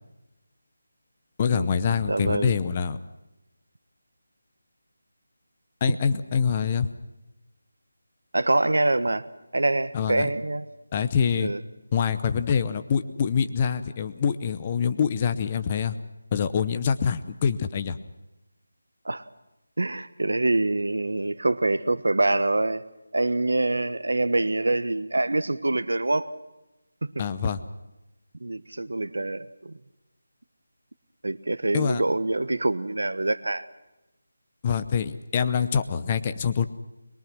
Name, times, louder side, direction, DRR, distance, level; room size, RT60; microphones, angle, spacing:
voice 1, 1.4-3.0 5.8-6.9 9.9-10.3 10.9-11.5 11.9-16.0 16.3-18.0 27.2-27.6 31.7-32.0 34.6-36.7, left 7 dB, 20° left, 0.7 m, -25 dB
voice 2, 2.1-2.6 8.3-9.3 9.5-10.6 11.4-11.6 19.0-19.2 19.8-22.8 23.1-26.3 27.0-27.2 28.4-29.7 31.2-33.6, right 2 dB, 85° right, 1.3 m, -25 dB
22.5 x 22.0 x 6.1 m
figure-of-eight pair, 175°, 0 cm